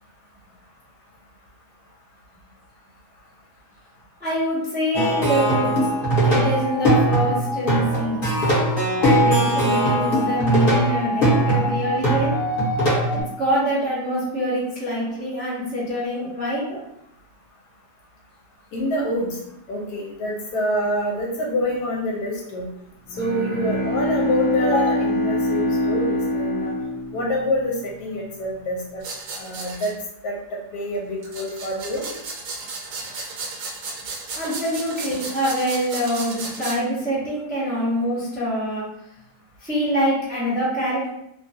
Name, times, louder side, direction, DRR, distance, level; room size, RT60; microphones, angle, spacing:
voice 1, 4.2-5.7 6.2-8.4 9.0-12.3 13.1-16.7 34.4-38.8 39.6-41.1, equal, 10° right, -9 dB, 0.7 m, -25 dB
Plucked string instrument, 4.9-13.2, right 1 dB, 40° left, 1.0 m, -20 dB
voice 2, 18.7-19.4 19.7-22.7 23.2-26.7 27.1-29.0 29.4-29.9 30.2-30.4 30.7-32.0, left 1 dB, 75° left, -2 dB, 1.2 m, -26 dB
Bowed string instrument, 23.1-27.9, left 1 dB, 60° right, 0.4 m, -24 dB
sound 1, 29.0-29.9 31.2-36.8, right 3 dB, 85° right, 1.2 m, -34 dB
2.9 x 2.3 x 2.7 m, 0.79 s
omnidirectional pair, 1.7 m